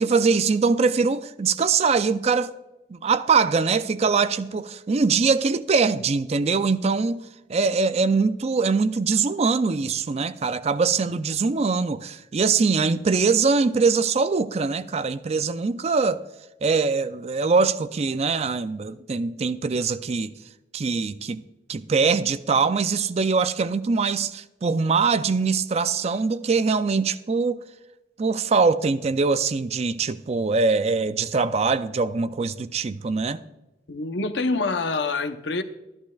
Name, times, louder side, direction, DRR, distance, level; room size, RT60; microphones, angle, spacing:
voice 1, 0.0-2.5 2.9-16.2 16.6-20.3 20.7-21.4 21.7-27.6 28.2-33.4, right 4 dB, 35° right, 0.4 m, -22 dB
voice 2, 33.9-35.6, left 3 dB, 75° left, 0.8 m, -26 dB
13.5 x 11.5 x 2.3 m
head